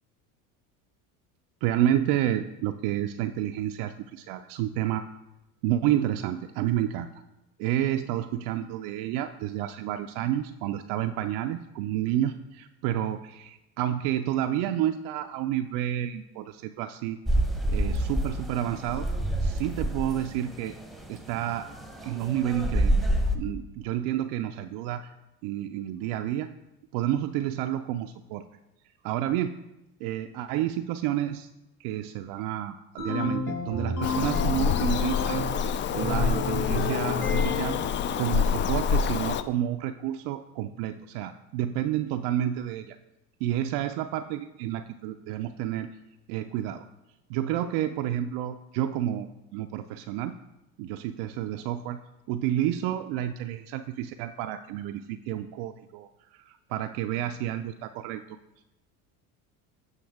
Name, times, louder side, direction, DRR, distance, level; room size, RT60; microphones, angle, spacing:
voice 1, 1.6-5.1 5.6-7.1 7.6-17.2 17.7-19.1 19.4-20.8 21.1-21.7 22.0-25.1 25.4-26.5 26.9-28.4 29.0-29.5 30.0-31.5 31.8-37.8 38.2-43.0 43.4-45.9 46.3-46.8 47.3-50.3 50.8-52.0 52.3-58.4, right 12 dB, 60° right, 7 dB, 0.5 m, -30 dB
sound 1, 17.3-23.4, right 1 dB, ahead, 0.9 m, -28 dB
sound 2, 33.0-35.6 36.0-37.8, left 2 dB, 85° left, 1.9 m, -32 dB
Bird vocalization bird call bird song, 34.0-39.4, left 7 dB, 30° left, 0.3 m, -26 dB
7.9 x 5.5 x 3.5 m, 0.96 s
hypercardioid pair, 80°, 44 cm